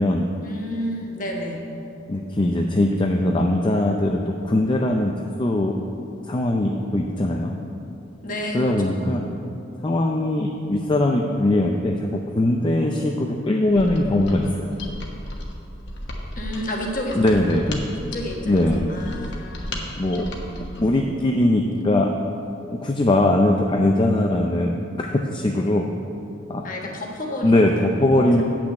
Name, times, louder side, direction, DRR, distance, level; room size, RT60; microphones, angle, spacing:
voice 1, 0.4-1.6 8.2-9.3 16.4-17.4 17.9-19.9 20.4-21.2 26.6-28.4, equal, 40° left, 0 dB, 1.4 m, -32 dB
voice 2, 2.1-5.1 5.4-5.8 6.3-7.6 8.5-9.3 9.8-14.7 17.2-17.8 18.5-18.9 20.0-20.3 20.6-22.1 22.7-25.8 26.5-26.6 27.4-28.4, left 1 dB, 25° left, 2 dB, 0.4 m, -21 dB
Mechanisms, 13.7-20.9, left 1 dB, 60° left, 1.2 m, -35 dB
8.5 x 6.0 x 7.8 m, 2.7 s
head